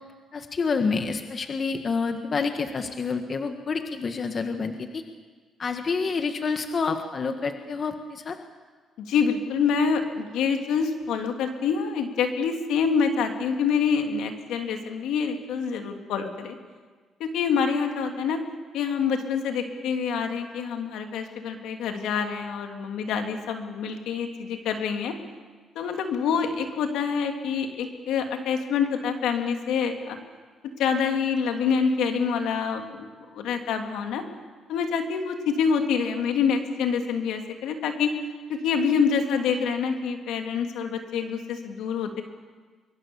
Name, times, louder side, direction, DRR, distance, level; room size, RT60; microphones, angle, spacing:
voice 1, 0.3-5.0 5.6-8.4, left 4 dB, 45° left, 6 dB, 1.7 m, -28 dB
voice 2, 9.0-16.5 17.2-18.4 18.7-25.1 25.7-30.2 30.8-33.1 33.3-34.2 34.7-38.1 38.5-42.2, left 6 dB, 85° left, 5 dB, 2.8 m, -26 dB
24.0 x 23.5 x 7.2 m, 1.5 s
cardioid pair, 90°, 0 cm